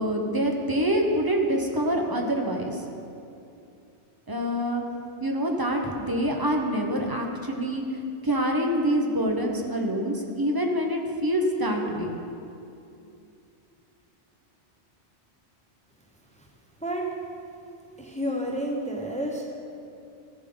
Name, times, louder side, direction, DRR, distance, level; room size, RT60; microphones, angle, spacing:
voice 1, 0.0-2.8 4.3-4.9 5.2-7.8 8.2-12.1, equal, 20° right, 1 dB, 0.9 m, -26 dB
voice 2, 18.0-19.5, equal, 5° left, 0 dB, 0.8 m, -30 dB
15.0 x 7.2 x 3.9 m, 2.7 s
omnidirectional pair, 1.2 m